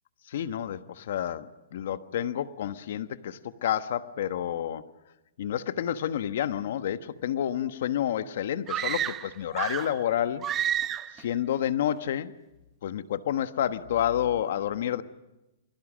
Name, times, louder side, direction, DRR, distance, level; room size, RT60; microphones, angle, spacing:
voice 1, 0.3-4.8 5.4-10.5 11.2-12.3 12.8-15.0, left 10 dB, 65° left, 12 dB, 1.2 m, -29 dB
sound 1, 8.7-10.0 10.4-11.2, right 10 dB, 20° right, 0.7 m, -30 dB
28.5 x 22.0 x 6.3 m, 1.0 s
hypercardioid pair, 150°, 0 cm